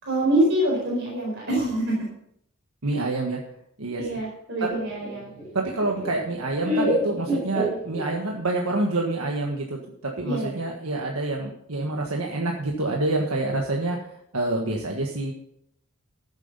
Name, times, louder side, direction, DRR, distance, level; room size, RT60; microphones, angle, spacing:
voice 1, 0.0-2.0 4.0-5.3 10.2-10.6, right 1 dB, 55° right, -4 dB, 4.7 m, -25 dB
voice 2, 2.8-3.4 3.8-4.1 4.6-4.7 5.5-14.0 14.3-15.3, right 2 dB, 75° right, 0 dB, 1.6 m, -27 dB
Laughter, 4.7-8.4, right 1 dB, 35° right, 6.1 m, -28 dB
14.5 x 8.2 x 5.6 m, 0.72 s
head